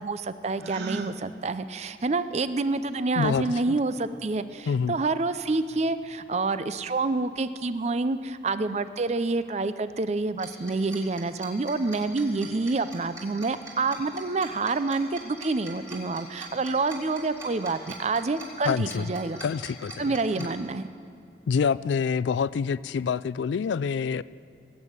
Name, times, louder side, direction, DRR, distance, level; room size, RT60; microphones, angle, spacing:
voice 1, 0.0-19.4 20.0-20.9, right 3 dB, 35° right, 13 dB, 0.5 m, -28 dB
Gasp, 0.6-1.2, right 3 dB, 65° right, 0.8 m, -36 dB
voice 2, 3.2-3.8 4.7-4.9 18.6-19.1 19.4-20.5 21.5-24.2, left 6 dB, 85° left, 19 dB, 0.3 m, -27 dB
Tick-tock, 10.4-20.4, right 2 dB, 15° right, 3.1 m, -42 dB
19.0 x 8.3 x 8.7 m, 2.5 s
head